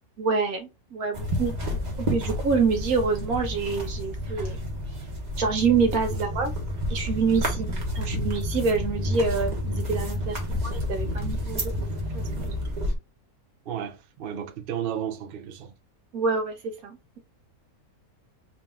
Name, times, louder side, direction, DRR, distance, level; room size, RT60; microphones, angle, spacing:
voice 1, 0.2-1.8 2.1-4.6 5.4-6.5 6.9-11.7 12.1-12.5 16.1-17.2, right 4 dB, 70° right, 1.3 m, -27 dB
sound 1, 1.1-13.0, equal, 30° right, 1.1 m, -30 dB
voice 2, 13.7-15.7, right 9 dB, 55° right, 0.6 m, -33 dB
3.9 x 2.6 x 3.6 m
omnidirectional pair, 1.6 m